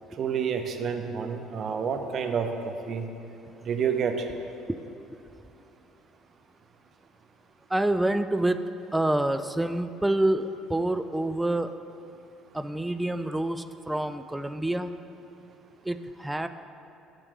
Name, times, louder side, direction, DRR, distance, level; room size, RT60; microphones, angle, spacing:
voice 1, 0.2-3.0 3.6-4.1, right 7 dB, 55° right, 6 dB, 0.6 m, -29 dB
voice 2, 7.7-8.6 8.9-11.7 12.5-15.0 15.8-16.5, right 1 dB, 10° right, 10 dB, 0.3 m, -27 dB
7.5 x 3.2 x 6.2 m, 2.7 s
hypercardioid pair, 70°, 0 cm